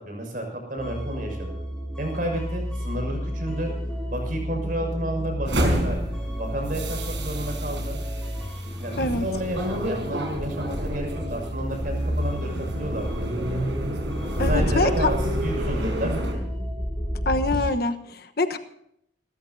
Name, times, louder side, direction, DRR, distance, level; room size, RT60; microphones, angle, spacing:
voice 1, 0.0-1.5 2.0-3.7 4.1-6.0 6.4-8.0 8.8-13.7 14.5-16.4, right 1 dB, 45° right, 2 dB, 6.4 m, -31 dB
sound 1, 0.8-17.7, equal, 5° left, 6.2 m, -32 dB
sound 2, 5.4-16.3, equal, 90° right, 4.9 m, -29 dB
voice 2, 14.4-15.1 17.2-18.6, left 2 dB, 55° left, 7 dB, 1.2 m, -25 dB
28.5 x 14.0 x 2.8 m, 0.74 s
head